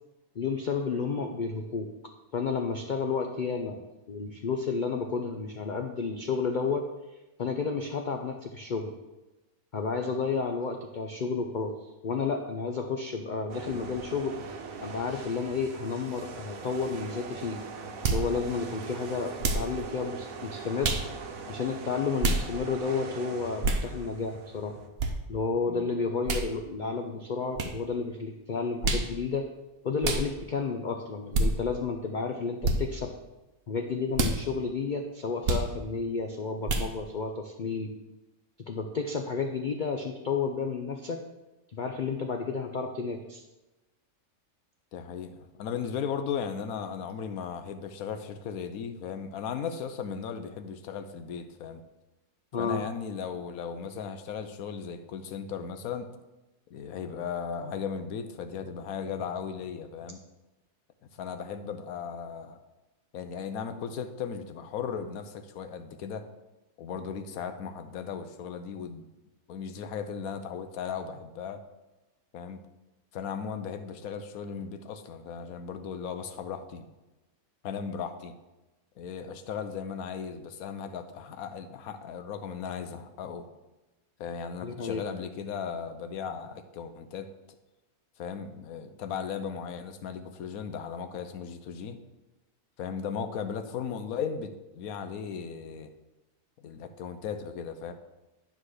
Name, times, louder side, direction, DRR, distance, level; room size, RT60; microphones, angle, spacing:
voice 1, 0.4-1.9 2.3-3.8 4.1-6.9 7.4-8.9 9.7-11.8 12.0-14.4 14.8-17.6 18.1-20.9 21.5-24.7 25.3-29.5 29.8-33.1 33.7-37.9 38.7-41.2 41.7-43.4 52.5-52.8 84.6-85.0, left 5 dB, 55° left, 4 dB, 0.5 m, -31 dB
sound 1, 13.5-24.9, right 5 dB, 70° right, 1.3 m, -41 dB
sound 2, 18.0-18.3 19.4-19.7 20.8-21.1 22.2-22.4 23.6-23.8 25.0-25.1 26.3-26.5 27.6-27.7 28.8-29.1 30.0-30.3 31.3-31.5 32.6-32.8 34.1-34.4 35.4-35.7 36.7-36.9, right 2 dB, 50° right, 0.9 m, -26 dB
voice 2, 44.9-51.8 52.6-56.1 56.7-60.2 61.1-62.6 63.1-66.3 66.8-69.1 69.5-71.6 72.3-72.6 73.1-76.9 77.6-78.3 79.0-83.5 84.2-87.3 88.2-92.0 92.8-95.9 96.6-97.9, left 7 dB, 80° left, 9 dB, 1.2 m, -36 dB
9.7 x 4.0 x 6.4 m, 1.1 s
omnidirectional pair, 1.5 m